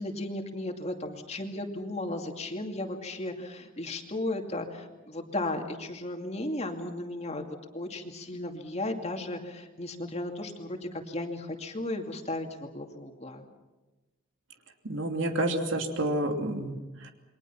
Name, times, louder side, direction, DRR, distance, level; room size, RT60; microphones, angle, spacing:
voice 1, 0.0-7.4 7.7-13.4, left 1 dB, 35° left, 3 dB, 2.5 m, -35 dB
voice 2, 14.8-17.1, right 1 dB, 70° right, 4 dB, 2.8 m, -29 dB
28.5 x 23.0 x 5.9 m, 1.1 s
head